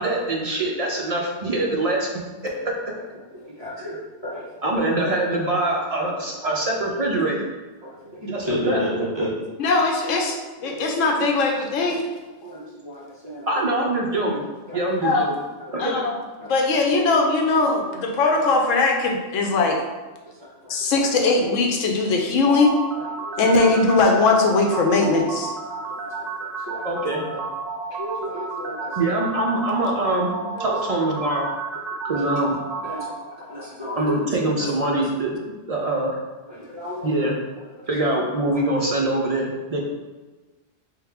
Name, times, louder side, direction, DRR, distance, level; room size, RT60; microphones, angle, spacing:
voice 1, 0.0-2.1 2.4-2.7 4.6-7.5 8.3-8.8 13.5-14.4 14.7-15.3 15.7-16.1 26.8-27.2 28.9-30.3 30.6-31.5 32.0-32.6 34.0-35.4 35.7-36.2 37.0-37.4 37.9-39.8, right 2 dB, 65° right, -2 dB, 0.3 m, -24 dB
voice 2, 3.3-4.5 6.4-6.6 7.8-9.3 10.6-10.9 11.8-11.9 12.4-13.5 14.2-14.3 14.7-14.9 15.6-15.9 16.4-16.5 20.3-21.1 23.0-23.7 25.7-26.9 27.9-29.2 30.5-30.8 31.9-32.1 32.8-34.1 36.4-37.3 37.8-37.9 39.7-39.8, equal, 25° right, -5 dB, 0.7 m, -33 dB
voice 3, 9.6-12.0 15.0-15.3 15.8-16.1 16.4-19.8 20.7-22.8 23.4-25.5 33.4-33.7, left 3 dB, 85° left, 2 dB, 1.0 m, -20 dB
sound 1, 22.5-33.1, right 4 dB, 85° right, 1.0 m, -31 dB
3.5 x 3.2 x 3.5 m, 1.2 s
omnidirectional pair, 1.3 m